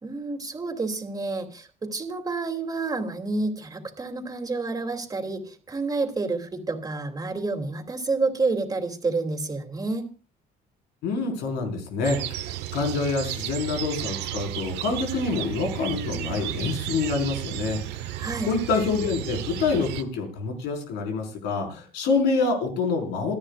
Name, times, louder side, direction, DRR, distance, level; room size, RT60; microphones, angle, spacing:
voice 1, 0.0-10.1 18.2-18.5, right 3 dB, 20° right, 4 dB, 3.0 m, -29 dB
voice 2, 11.0-12.4 12.7-17.8 18.4-23.4, left 4 dB, 90° left, 2 dB, 5.1 m, -26 dB
sound 1, 12.0-20.0, right 13 dB, 90° right, 1.1 m, -33 dB
27.5 x 10.0 x 2.5 m, 0.34 s
cardioid pair, 110°, 17 cm